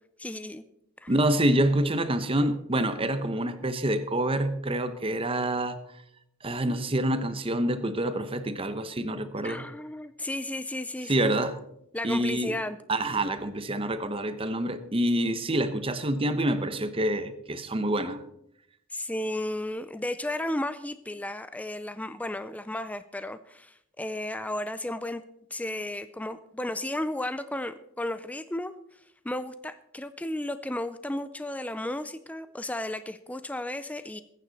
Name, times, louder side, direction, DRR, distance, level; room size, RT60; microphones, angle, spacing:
voice 1, 0.2-0.6 1.0-1.1 9.4-11.3 11.9-12.8 18.9-25.2 25.5-28.7 29.2-34.2, left 1 dB, 5° left, 0.4 m, -34 dB
voice 2, 1.1-5.8 6.4-9.6 11.1-11.6 12.0-12.5 12.9-18.2, right 1 dB, 25° right, 0.9 m, -27 dB
21.0 x 9.3 x 4.1 m
head